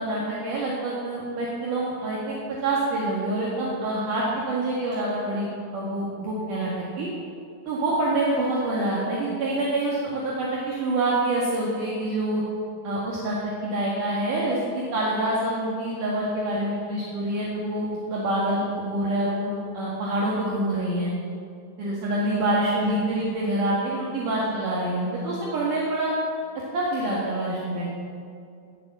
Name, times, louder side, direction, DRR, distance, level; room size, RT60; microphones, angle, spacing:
voice 1, 0.0-6.7 7.0-7.1 7.7-12.4 12.8-13.4 13.6-21.1 21.8-26.1 26.7-28.0, right 1 dB, 60° right, -6 dB, 3.2 m, -26 dB
18.0 x 7.5 x 7.4 m, 2.4 s
omnidirectional pair, 4.5 m